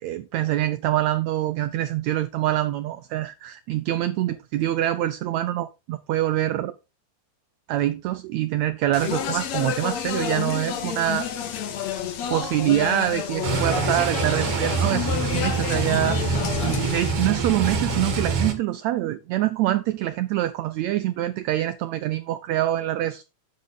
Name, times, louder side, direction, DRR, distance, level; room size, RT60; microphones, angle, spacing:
voice 1, 0.0-6.7 7.7-11.3 12.3-16.2 16.6-23.2, right 13 dB, 85° right, 1.6 m, -25 dB
Speech, 8.9-17.1, left 8 dB, 60° left, 2.2 m, -30 dB
sound 1, 13.4-18.5, right 4 dB, 45° right, 2.6 m, -25 dB
10.5 x 7.3 x 3.9 m
omnidirectional pair, 3.9 m